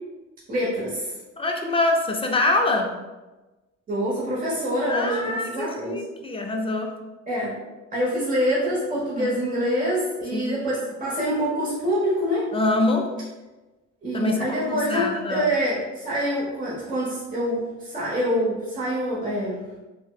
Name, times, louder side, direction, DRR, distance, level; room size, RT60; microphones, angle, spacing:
voice 1, 0.5-1.2 3.9-6.0 7.3-7.6 7.9-12.5 14.0-19.7, equal, 30° right, -7 dB, 0.9 m, -26 dB
voice 2, 1.4-2.9 4.9-7.0 9.2-9.4 10.3-10.6 12.5-13.1 14.1-15.5, left 2 dB, 20° left, 2 dB, 0.4 m, -25 dB
4.1 x 2.1 x 2.3 m, 1.1 s
cardioid pair, 90°, 30 cm